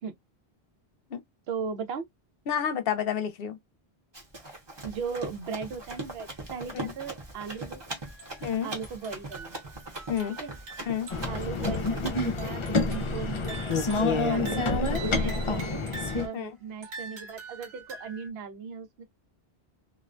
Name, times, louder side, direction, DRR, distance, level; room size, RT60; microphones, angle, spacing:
voice 1, 1.5-2.1 4.8-7.8 8.6-9.6 10.4-10.5 11.3-13.6 13.9-14.8 15.1-15.8 16.2-19.0, right 6 dB, 80° right, 0.9 m, -37 dB
voice 2, 2.5-3.6 6.7-6.9 8.4-8.7 10.1-10.4 10.9-11.1 15.2-15.5 16.3-16.5, left 8 dB, 70° left, 0.8 m, -30 dB
Run, 4.1-12.5, right 2 dB, 30° right, 0.8 m, -41 dB
sound 1, 8.1-8.4 8.8-11.4 11.7-11.8 12.7-13.2 13.4-16.3 16.8-18.3, right 3 dB, 60° right, 1.0 m, -44 dB
sound 2, 11.1-16.3, left 3 dB, 45° left, 0.4 m, -28 dB
2.4 x 2.1 x 2.4 m
omnidirectional pair, 1.0 m